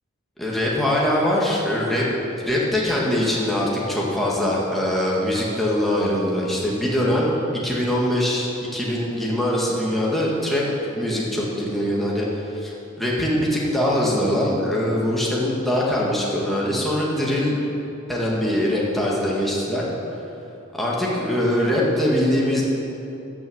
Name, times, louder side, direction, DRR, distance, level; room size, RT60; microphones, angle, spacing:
voice 1, 0.4-2.1 2.4-7.4 7.6-10.6 11.0-17.6 18.1-19.8 20.7-22.6, left 1 dB, ahead, -5 dB, 1.7 m, -22 dB
13.5 x 6.4 x 7.8 m, 2.9 s
head